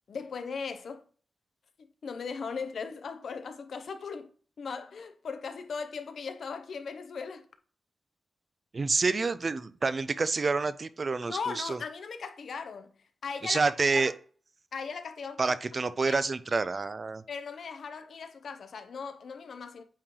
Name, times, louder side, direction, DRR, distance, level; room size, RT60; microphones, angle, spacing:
voice 1, 0.1-1.0 1.8-4.3 4.6-7.5 11.3-13.0 13.2-13.6 13.9-14.2 14.7-16.2 17.3-19.8, left 5 dB, 65° left, 0.8 m, -38 dB
voice 2, 8.7-11.8 13.4-14.1 15.4-17.2, right 4 dB, 35° right, 0.4 m, -28 dB
8.6 x 3.1 x 3.8 m
wide cardioid pair, 150°, 0 cm